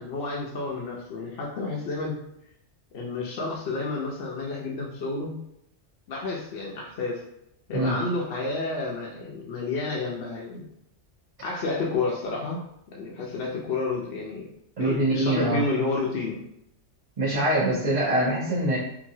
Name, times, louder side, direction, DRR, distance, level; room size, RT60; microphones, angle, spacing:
voice 1, 0.0-2.2 2.9-5.4 6.1-7.2 7.7-10.6 11.4-12.6 12.9-14.5 14.8-16.4, left 3 dB, 65° left, -3 dB, 0.7 m, -30 dB
voice 2, 14.8-15.6 17.2-18.8, right 1 dB, 35° right, -10 dB, 0.8 m, -24 dB
2.9 x 2.6 x 2.6 m, 0.79 s
omnidirectional pair, 1.3 m